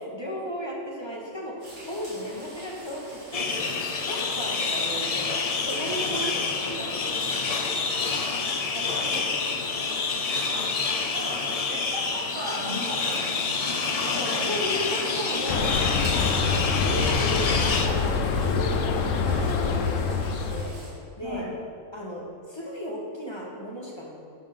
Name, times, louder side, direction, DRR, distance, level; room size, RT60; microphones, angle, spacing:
voice 1, 0.0-7.3 8.7-9.1 14.1-15.7 16.1-16.3 16.8-20.8 21.2-21.5 21.9-24.1, equal, 20° left, -3 dB, 1.2 m, -34 dB
sound 1, 1.6-20.9, right 1 dB, 85° right, 2.7 m, -45 dB
sound 2, 3.3-17.9, left 4 dB, 60° left, 0.4 m, -28 dB
voice 2, 11.0-14.7 21.2-21.5, equal, 60° right, -7 dB, 1.9 m, -37 dB
sound 3, 15.5-20.7, left 5 dB, 75° left, 1.0 m, -25 dB
9.2 x 3.7 x 6.7 m, 2.7 s
omnidirectional pair, 1.4 m